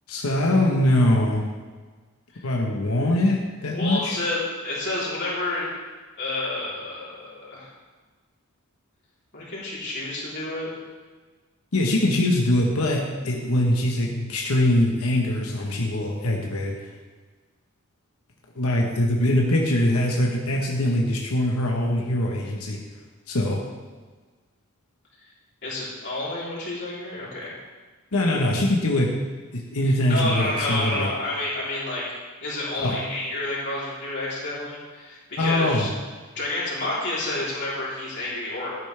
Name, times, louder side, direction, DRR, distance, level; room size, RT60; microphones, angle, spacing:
voice 1, 0.1-1.4 2.4-4.1 11.7-16.7 18.5-22.8 23.3-23.6 28.1-29.2 29.5-31.1 32.8-33.0 35.4-35.9, left 1 dB, 80° left, -1 dB, 1.3 m, -22 dB
voice 2, 3.7-4.4 4.6-5.6 6.2-7.7 9.3-10.7 25.6-27.5 30.1-32.0 32.4-35.9 36.3-38.7, left 2 dB, 50° left, -7 dB, 3.7 m, -29 dB
12.5 x 9.2 x 3.4 m, 1.4 s
head